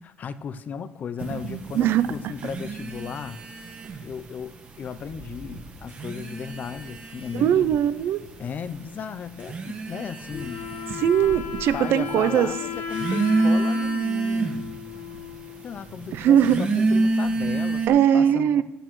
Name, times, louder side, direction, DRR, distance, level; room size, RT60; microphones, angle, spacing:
voice 1, 0.0-3.4 4.0-7.8 8.4-10.7 11.7-14.8 15.6-18.6, left 7 dB, 45° left, 13 dB, 0.5 m, -35 dB
sound 1, 1.2-4.3 4.6-5.3 5.8-17.9, right 3 dB, 40° right, 1.4 m, -28 dB
voice 2, 1.3-2.1 7.3-8.2 11.0-12.5 16.1-16.6 17.9-18.6, right 9 dB, 65° right, 14 dB, 0.4 m, -20 dB
Wind / Car, 3.8-9.5 9.9-12.3, right 2 dB, 85° right, 2.4 m, -47 dB
Wind instrument woodwind instrument, 10.3-15.8, left 8 dB, 70° left, 1.0 m, -35 dB
15.0 x 8.7 x 3.1 m, 1.0 s
cardioid pair, 115°, 4 cm